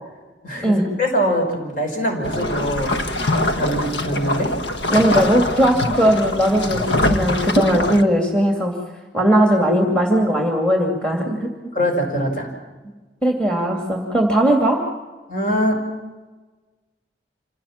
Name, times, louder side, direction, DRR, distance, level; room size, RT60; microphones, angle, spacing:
voice 1, 0.4-2.9 3.5-4.5 11.7-12.5 15.3-15.8, equal, 50° left, 2 dB, 5.3 m, -23 dB
sound 1, 2.2-8.0, left 1 dB, 85° left, 1.3 m, -23 dB
voice 2, 4.9-8.7 9.1-11.5 13.2-14.8, equal, 5° left, 1 dB, 2.6 m, -18 dB
26.5 x 17.0 x 7.4 m, 1.3 s
head